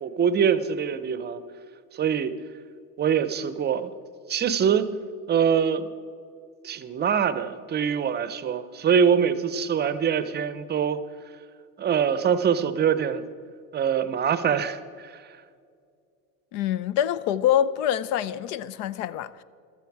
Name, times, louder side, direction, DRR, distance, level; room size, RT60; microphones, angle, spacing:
voice 1, 0.0-1.4 1.9-2.3 3.0-3.9 4.3-4.9 5.3-5.9 6.6-11.0 11.8-13.2 13.7-15.3, right 7 dB, 25° right, 0.6 m, -24 dB
voice 2, 16.5-19.4, left 10 dB, 65° left, 0.7 m, -25 dB
14.5 x 12.5 x 4.7 m
supercardioid pair, 125°, 41 cm